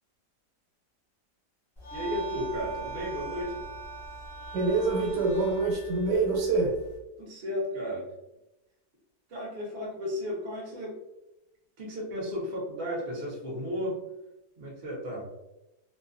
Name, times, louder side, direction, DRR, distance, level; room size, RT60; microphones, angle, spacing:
sound 1, 1.8-7.0, right 4 dB, 20° left, 0.6 m, -40 dB
voice 1, 1.9-3.6 7.2-8.1 9.3-11.0 11.8-14.0 14.6-15.3, left 1 dB, 45° right, -3 dB, 0.9 m, -34 dB
voice 2, 4.5-6.7, right 3 dB, 85° right, -1 dB, 1.3 m, -26 dB
2.7 x 2.1 x 2.5 m, 0.93 s
omnidirectional pair, 1.8 m